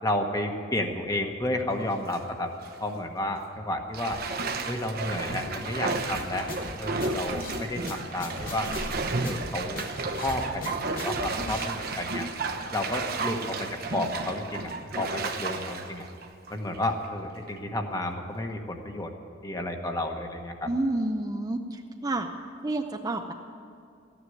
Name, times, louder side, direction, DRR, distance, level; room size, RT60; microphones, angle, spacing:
voice 1, 0.0-2.5 2.8-4.2 4.6-6.5 6.8-8.7 9.2-9.8 10.2-12.3 12.7-16.1 16.5-19.1 19.4-20.7, left 1 dB, 20° left, 4 dB, 1.2 m, -31 dB
Bathtub (filling or washing), 1.8-2.2 2.6-2.7 3.9-17.1 17.5-17.6, right 3 dB, 50° right, 0.9 m, -33 dB
sound 1, 6.1-11.6, left 2 dB, 50° left, 1.7 m, -40 dB
voice 2, 20.7-22.3 22.6-23.3, right 2 dB, 20° right, 5 dB, 0.5 m, -29 dB
13.5 x 9.7 x 9.7 m, 2.4 s
head